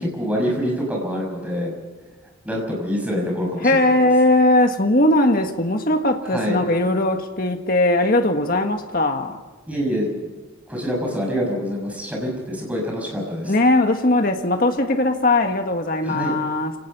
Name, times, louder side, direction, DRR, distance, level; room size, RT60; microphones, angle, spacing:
voice 1, 0.0-1.7 2.4-3.9 6.3-6.7 9.7-10.1 10.7-13.5 16.0-16.3, equal, 5° right, -1 dB, 6.5 m, -25 dB
voice 2, 3.6-9.4 13.5-16.7, left 1 dB, 45° left, 5 dB, 1.8 m, -19 dB
29.0 x 18.5 x 5.6 m, 1.3 s
head